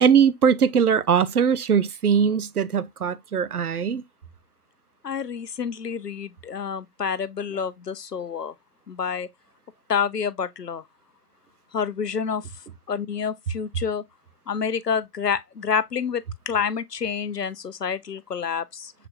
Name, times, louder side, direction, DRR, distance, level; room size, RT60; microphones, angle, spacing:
voice 1, 0.0-4.0, right 7 dB, 75° right, 0.6 m, -20 dB
voice 2, 5.0-8.5 8.9-9.3 9.9-10.8 11.7-12.5 12.9-14.0 14.5-18.9, left 6 dB, 90° left, 0.7 m, -28 dB
6.7 x 3.0 x 2.4 m
figure-of-eight pair, 140°, 46 cm